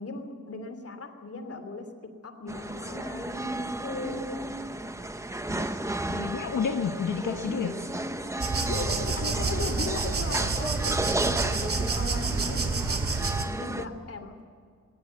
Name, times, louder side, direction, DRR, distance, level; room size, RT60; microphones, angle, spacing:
voice 1, 0.0-1.9 2.2-4.4 8.7-11.0 11.2-13.0 13.6-14.4, left 3 dB, 45° left, 7 dB, 2.9 m, -38 dB
sound 1, 2.5-13.9, right 1 dB, 10° right, 0.8 m, -33 dB
voice 2, 5.5-5.8 6.1-7.7 12.4-12.5, left 6 dB, 75° left, 3 dB, 1.6 m, -31 dB
sound 2, 8.4-13.5, right 4 dB, 45° right, 2.3 m, -29 dB
20.0 x 19.5 x 8.1 m, 2.1 s
wide cardioid pair, 125°, 31 cm